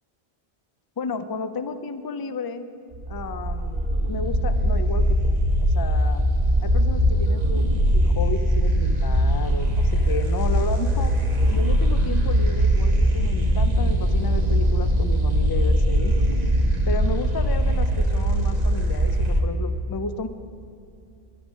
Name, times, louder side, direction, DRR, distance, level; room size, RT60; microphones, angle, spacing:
voice 1, 1.0-2.7 3.1-6.3 6.6-7.7 7.9-11.1 11.5-16.2 16.9-20.3, left 4 dB, 35° left, 11 dB, 0.4 m, -32 dB
sound 1, 2.9-19.4, equal, 40° right, 1.3 m, -21 dB
11.5 x 11.5 x 6.0 m, 2.7 s
omnidirectional pair, 1.1 m